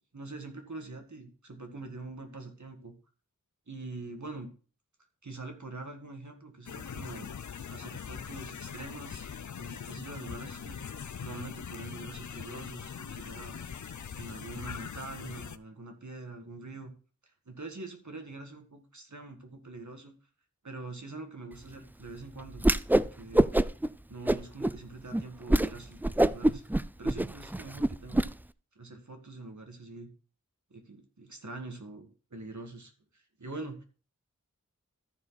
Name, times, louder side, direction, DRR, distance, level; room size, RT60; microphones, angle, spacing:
voice 1, 0.1-2.9 3.7-4.5 5.2-7.3 7.7-9.3 9.6-10.8 11.2-13.6 14.1-16.9 17.5-20.1 20.6-22.6 22.9-23.5 24.1-28.3 28.8-30.1 30.7-33.8, right 3 dB, 60° right, 4 dB, 2.0 m, -44 dB
sound 1, 6.7-15.6, left 7 dB, 60° left, 0.6 m, -41 dB
Whoosh swoosh swish, 22.6-23.1 23.3-23.9 24.3-24.7 25.1-25.2 25.5-25.7 26.0-28.3, right 1 dB, 5° right, 0.3 m, -24 dB
14.0 x 5.0 x 4.1 m, 0.38 s
wide cardioid pair, 40°, 33 cm